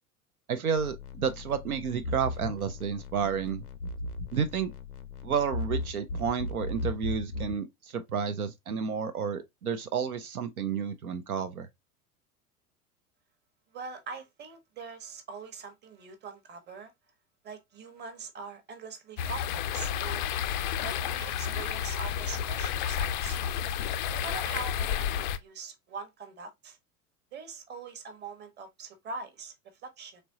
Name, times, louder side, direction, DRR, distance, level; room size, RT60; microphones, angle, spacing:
voice 1, 0.5-3.6 4.3-4.7 5.2-11.7, right 7 dB, 75° right, 0.7 m, -31 dB
sound 1, 0.8-7.6, left 2 dB, 85° left, 0.6 m, -37 dB
voice 2, 13.7-16.9 17.4-20.3 20.8-23.4 24.1-26.8 27.3-29.5 29.8-30.2, right 4 dB, 25° right, 1.0 m, -42 dB
sound 2, 19.2-25.4, left 9 dB, 35° left, 0.4 m, -31 dB
4.2 x 3.2 x 2.7 m
figure-of-eight pair, 80°, 44 cm